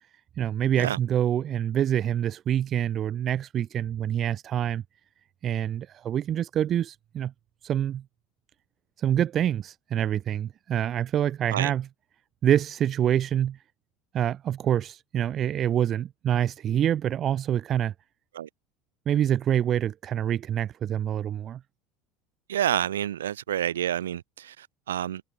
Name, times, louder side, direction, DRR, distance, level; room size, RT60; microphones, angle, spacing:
voice 1, 0.4-4.8 5.4-7.3 7.6-8.0 9.0-11.9 12.4-13.6 14.1-17.9 19.1-21.6, right 10 dB, 40° right, 1.3 m, -26 dB
voice 2, 22.5-25.2, right 11 dB, 75° right, 2.3 m, -28 dB
figure-of-eight pair, 70°, 0 cm